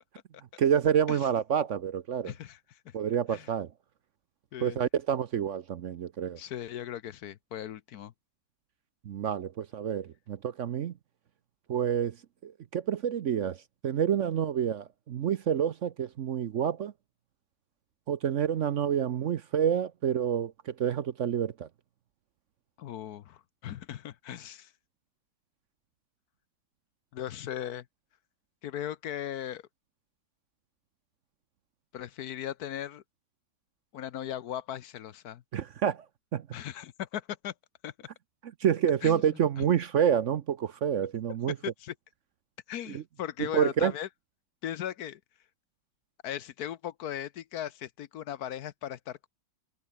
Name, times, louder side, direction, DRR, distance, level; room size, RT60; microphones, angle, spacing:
voice 1, 0.6-2.3 2.9-3.7 4.6-6.4 9.1-10.9 11.7-12.2 12.4-16.9 18.1-21.7 35.5-36.0 36.3-36.5 38.6-41.6 42.9-43.0 43.4-43.9, right 8 dB, 60° right, 0.8 m, -28 dB
voice 2, 2.2-2.9 3.3-3.5 4.5-4.8 6.4-8.1 22.8-24.7 27.1-27.9 28.6-29.6 31.9-33.0 33.9-35.4 36.5-37.5 37.8-38.1 39.0-39.4 41.6-41.9 42.7-44.1 44.6-45.2 46.2-49.3, left 11 dB, 65° left, 1.2 m, -38 dB
omnidirectional pair, 1.9 m